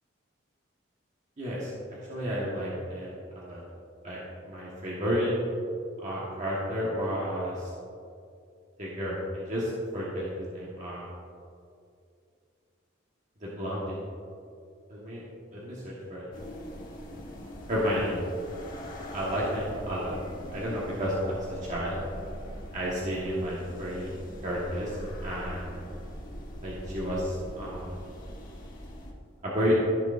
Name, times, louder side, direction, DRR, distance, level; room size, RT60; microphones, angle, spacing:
voice 1, 1.4-1.7 2.1-3.1 3.3-3.6 4.0-4.2 4.4-5.3 6.0-7.7 8.8-11.1 13.4-14.0 14.9-15.2 15.5-16.3 17.7-18.2 19.1-20.1 20.5-22.0 22.7-24.1 24.4-25.8 26.6-28.0 29.4-29.8, equal, 40° right, -6 dB, 1.4 m, -31 dB
sound 1, 16.3-29.1, equal, 45° left, 1.4 m, -42 dB
14.5 x 6.1 x 2.6 m, 2.4 s
head